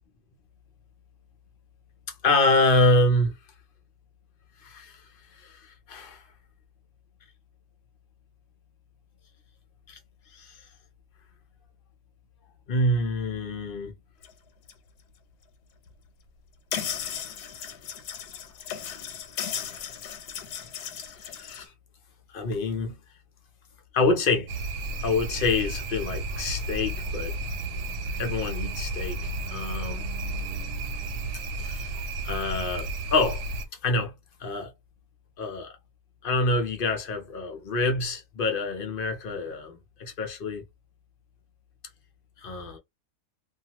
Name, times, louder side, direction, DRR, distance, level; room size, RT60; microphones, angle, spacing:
voice 1, 2.2-3.4 4.6-5.0 5.3-6.2 9.9-10.0 10.3-10.6 12.7-13.9 21.3-21.7 22.3-22.9 23.9-24.5 25.0-27.4 28.2-30.1 31.6-31.9 32.2-33.4 33.8-34.1 34.4-34.7 35.4-35.7 36.2-40.6 42.4-42.8, left 2 dB, 55° left, 0.6 m, -26 dB
sound 1, 14.2-14.3 14.7-14.8 15.9-16.0 16.7-21.6, left 8 dB, 85° left, 1.2 m, -36 dB
sound 2, 24.5-33.7, right 2 dB, 80° right, 1.1 m, -32 dB
2.5 x 2.3 x 2.9 m
omnidirectional pair, 1.7 m